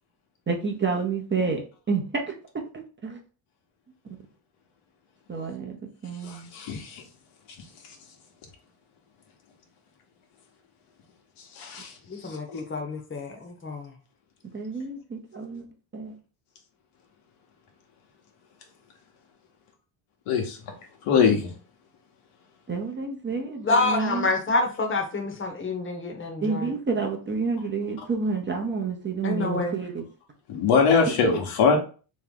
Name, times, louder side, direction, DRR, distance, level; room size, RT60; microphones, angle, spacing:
voice 1, 0.5-1.6 1.9-2.2 2.7-3.2 5.3-5.8 6.0-6.5 14.5-15.7 15.9-16.1 22.7-24.3 26.4-30.0, right 4 dB, 25° right, 0.7 m, -29 dB
voice 2, 6.2-7.0 11.5-11.9 12.3-12.6 20.3-20.6 21.0-21.5 30.5-31.8, left 5 dB, 80° left, 1.3 m, -22 dB
voice 3, 12.1-13.9 23.6-26.7 29.2-29.7, left 2 dB, 25° left, 1.0 m, -27 dB
3.3 x 3.1 x 3.7 m
cardioid pair, 115°, 50 cm